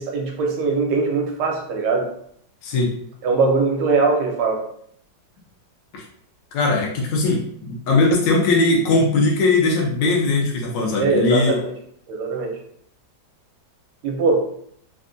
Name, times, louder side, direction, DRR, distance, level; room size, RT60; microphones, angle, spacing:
voice 1, 0.0-2.1 3.2-4.7 11.0-11.7 12.1-12.6 14.0-14.5, right 4 dB, 75° right, 1 dB, 1.3 m, -21 dB
voice 2, 6.5-11.6, left 3 dB, 85° left, -1 dB, 1.3 m, -19 dB
3.4 x 2.1 x 2.5 m, 0.67 s
omnidirectional pair, 1.9 m